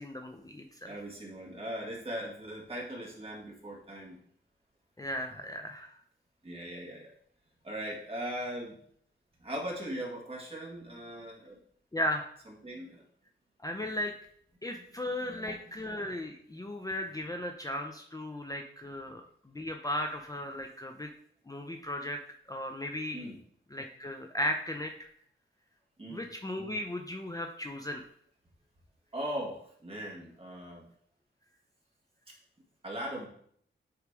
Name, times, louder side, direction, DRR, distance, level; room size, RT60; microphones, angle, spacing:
voice 1, 0.0-0.9 5.0-6.0 11.9-12.3 13.6-14.1 14.6-21.1 21.5-22.2 22.5-23.3 23.7-24.9 26.1-28.0, left 1 dB, 15° left, 3 dB, 0.6 m, -36 dB
voice 2, 0.8-4.2 6.4-7.1 7.6-8.8 9.4-11.6 12.5-13.1 14.7-15.6 23.1-23.4 26.0-26.3 29.1-30.8 32.8-33.3, equal, 30° right, -3 dB, 2.1 m, -39 dB
8.2 x 3.2 x 4.8 m, 0.64 s
wide cardioid pair, 95°, 20 cm